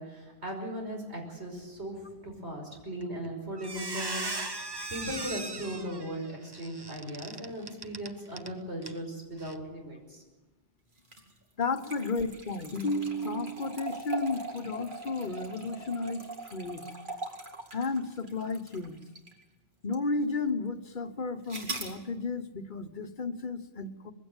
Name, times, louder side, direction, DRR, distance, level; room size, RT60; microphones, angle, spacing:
voice 1, 0.0-4.3 4.6-10.2, equal, 85° right, 1 dB, 5.8 m, -38 dB
Squeak, 3.0-3.3 3.6-8.5 8.8-9.0 9.4-9.5, right 3 dB, 25° right, 0.9 m, -38 dB
sound 1, 11.0-19.4 19.9-20.0 21.5-22.0, right 2 dB, 50° right, 2.4 m, -41 dB
voice 2, 11.6-16.9 17.7-19.0 19.8-24.1, left 3 dB, 50° left, 10 dB, 1.2 m, -33 dB
21.5 x 16.0 x 8.9 m, 1.1 s
omnidirectional pair, 1.1 m